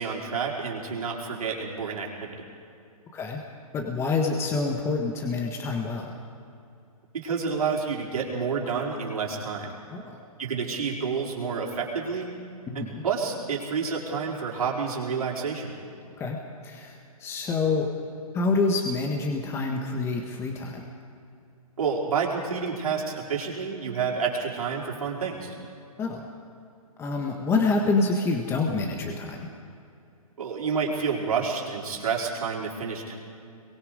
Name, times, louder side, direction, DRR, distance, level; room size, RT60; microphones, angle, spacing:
voice 1, 0.0-2.4 7.1-9.8 10.4-12.3 12.7-15.7 21.8-25.6 30.4-33.1, right 5 dB, 70° right, -3 dB, 4.9 m, -29 dB
voice 2, 3.7-6.1 9.9-10.2 12.7-13.0 16.2-16.4 16.6-17.9 18.3-20.8 26.0-26.2 27.0-29.5, left 3 dB, 15° left, 1 dB, 1.5 m, -27 dB
24.5 x 22.5 x 5.1 m, 2.6 s
hypercardioid pair, 140°, 19 cm